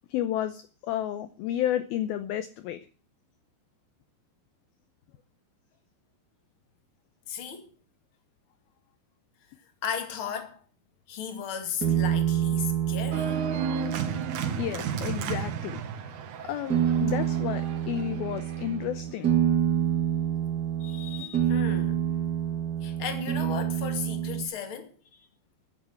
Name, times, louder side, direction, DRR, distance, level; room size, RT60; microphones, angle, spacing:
voice 1, 0.1-2.9 14.6-15.8 16.4-19.3, left 11 dB, 75° left, 2.3 m, -31 dB
voice 2, 7.3-7.7 9.8-10.6 11.1-13.4 20.3-20.4 20.8-22.0 22.8-25.3, left 7 dB, 35° left, 2.4 m, -36 dB
sound 1, 11.8-15.7 16.7-24.4, right 10 dB, 25° right, 2.7 m, -28 dB
Organ, 13.1-18.8, right 6 dB, 60° right, 2.2 m, -34 dB
14.0 x 9.2 x 7.8 m
omnidirectional pair, 5.1 m